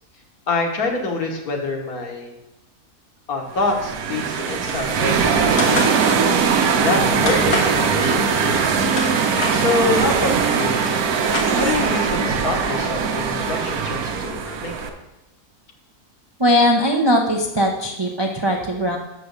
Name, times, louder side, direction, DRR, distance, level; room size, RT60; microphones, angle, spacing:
voice 1, 0.5-2.3 3.3-6.0 6.8-8.8 9.5-10.8 11.5-14.8, left 3 dB, 70° left, 2 dB, 1.7 m, -25 dB
sound 1, 3.6-14.9, right 6 dB, 70° right, 1.2 m, -20 dB
sound 2, 5.6-6.0 7.3-7.7 8.6-9.6 10.4-10.5 10.7-11.9, left 3 dB, 90° left, 2.0 m, -26 dB
voice 2, 16.4-19.0, equal, 30° right, 0 dB, 0.4 m, -19 dB
6.9 x 5.1 x 6.5 m, 0.97 s
omnidirectional pair, 1.6 m